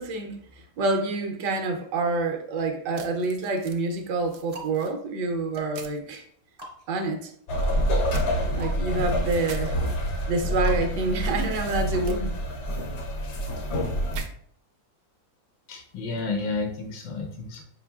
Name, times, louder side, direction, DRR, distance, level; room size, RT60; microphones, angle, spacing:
voice 1, 0.0-6.2 6.9-7.3 8.5-9.7 10.0-12.4, right 3 dB, 70° right, 4 dB, 1.2 m, -27 dB
sound 1, 2.9-3.8 4.3-4.9 5.7-6.0 8.1-8.3 9.4-9.6 12.1-12.2 14.1-14.3, right 6 dB, 90° right, 1.3 m, -42 dB
sound 2, 4.5-12.7, right 2 dB, 35° right, 0.6 m, -46 dB
sound 3, 7.5-14.2, equal, 55° left, 0.8 m, -27 dB
voice 2, 15.7-17.6, left 3 dB, 75° left, 1 dB, 1.5 m, -31 dB
5.1 x 4.2 x 2.3 m, 0.62 s
omnidirectional pair, 2.0 m